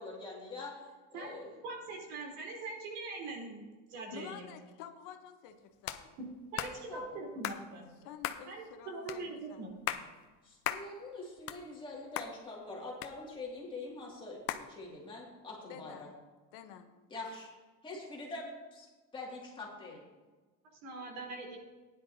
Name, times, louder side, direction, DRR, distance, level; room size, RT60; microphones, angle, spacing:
voice 1, 0.0-0.8 1.1-1.6 6.6-7.2 10.4-16.0 17.1-17.5 17.8-20.0, left 2 dB, 15° left, -3 dB, 2.2 m, -44 dB
voice 2, 1.6-3.6 3.9-4.4 6.5-7.9 8.5-10.0 20.8-21.6, right 3 dB, 80° right, -1 dB, 3.7 m, -42 dB
voice 3, 4.1-6.2 8.0-9.6 15.7-16.1 16.5-16.9, left 9 dB, 60° left, 7 dB, 1.0 m, -50 dB
sound 1, 5.9-6.0 6.6-6.8 7.4-7.6 8.2-8.4 9.1-9.2 9.7-10.1 10.6-10.9 11.3-11.9 12.2-12.3 13.0-13.6 14.5-14.7, left 12 dB, 45° left, 0.6 m, -36 dB
15.5 x 10.5 x 2.7 m, 1.3 s
cardioid pair, 165°, 34 cm